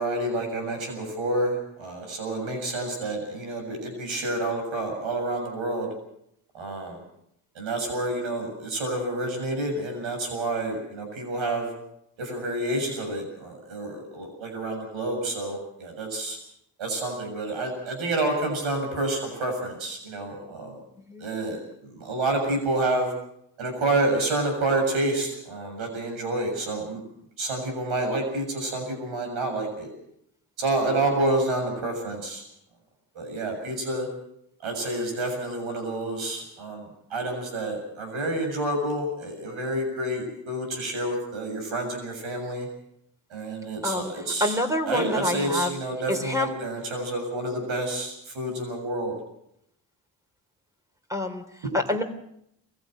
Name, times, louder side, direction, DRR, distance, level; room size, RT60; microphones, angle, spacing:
voice 1, 0.0-5.9 6.5-7.0 7.6-11.7 12.2-16.4 16.8-20.8 21.2-23.1 23.6-27.0 27.4-29.9 30.6-32.4 33.1-34.1 34.6-42.7 43.3-44.6 44.9-49.1 51.6-51.7, right 2 dB, 70° right, 4 dB, 7.3 m, -29 dB
voice 2, 43.8-45.7 46.1-46.5 51.1-51.4 51.7-52.0, left 1 dB, 5° right, 4 dB, 3.4 m, -27 dB
22.5 x 15.5 x 7.8 m, 0.76 s
supercardioid pair, 50°, 48 cm